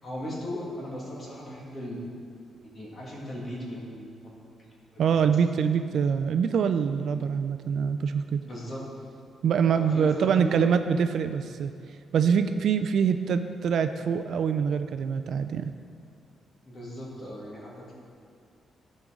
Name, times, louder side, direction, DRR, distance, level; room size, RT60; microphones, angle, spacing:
voice 1, 0.0-2.0 2.6-4.7 4.9-5.1 8.4-8.8 9.8-10.6 16.6-17.9, equal, 30° left, -4 dB, 1.8 m, -37 dB
voice 2, 5.0-8.4 9.4-11.7 12.1-15.7, right 7 dB, 60° right, 9 dB, 0.3 m, -24 dB
14.0 x 5.3 x 3.7 m, 2.3 s
wide cardioid pair, 165°, 0 cm